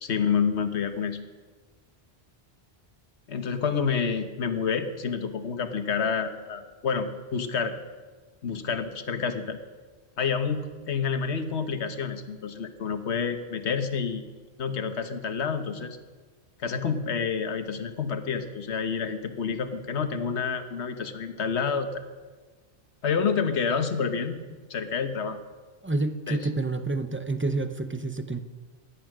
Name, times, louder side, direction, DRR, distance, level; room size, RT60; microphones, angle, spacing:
voice 1, 0.0-1.2 3.3-7.7 8.4-9.6 10.2-14.2 14.6-16.0 16.6-22.0 23.0-24.4 24.7-25.4 26.3-26.4, left 6 dB, 75° left, 8 dB, 1.3 m, -28 dB
voice 2, 25.8-28.4, right 2 dB, 15° right, 9 dB, 0.5 m, -28 dB
15.5 x 11.0 x 6.1 m, 1.4 s
omnidirectional pair, 1.1 m